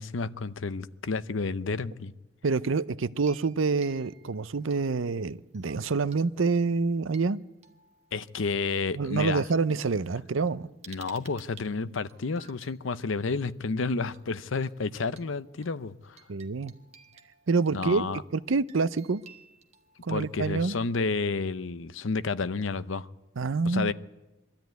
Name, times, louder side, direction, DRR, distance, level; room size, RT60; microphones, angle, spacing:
voice 1, 0.0-2.1 8.1-9.4 10.9-16.2 17.7-18.2 20.1-23.1 23.6-23.9, left 4 dB, 80° left, 0.7 m, -30 dB
voice 2, 2.4-7.4 8.9-10.7 16.3-16.7 17.5-18.0 18.3-19.2 20.0-20.8 23.4-23.9, right 4 dB, 85° right, 0.6 m, -27 dB
sound 1, 3.2-5.1 5.5-6.2 6.6-8.7 9.6-9.7 10.0-12.8 14.1-14.3 14.6-14.7 15.1-20.5, right 7 dB, 35° right, 1.4 m, -56 dB
23.5 x 13.5 x 9.3 m
head